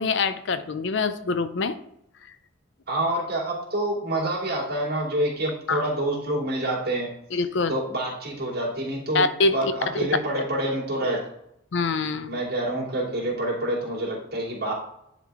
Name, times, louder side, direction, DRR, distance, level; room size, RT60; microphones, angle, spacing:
voice 1, 0.0-1.8 5.7-5.8 7.3-7.7 9.1-9.7 11.7-12.4, left 3 dB, 60° left, 12 dB, 0.5 m, -24 dB
voice 2, 2.9-7.1 7.7-9.3 9.5-11.2 12.3-14.7, right 1 dB, 50° right, -5 dB, 2.8 m, -27 dB
10.5 x 3.8 x 3.5 m, 0.76 s
head